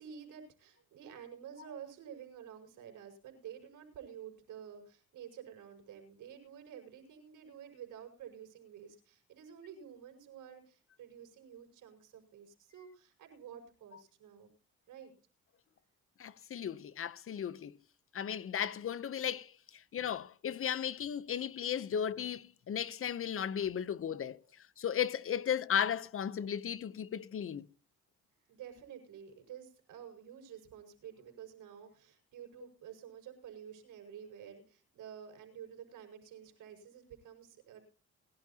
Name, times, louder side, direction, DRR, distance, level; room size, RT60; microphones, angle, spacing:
voice 1, 0.0-14.5 14.9-15.1 28.5-37.8, right 8 dB, 85° right, 5.3 m, -50 dB
voice 2, 16.2-17.8 18.1-24.4 24.8-27.7, left 8 dB, 45° left, 0.7 m, -35 dB
21.5 x 12.0 x 2.8 m
cardioid pair, 90°, 30 cm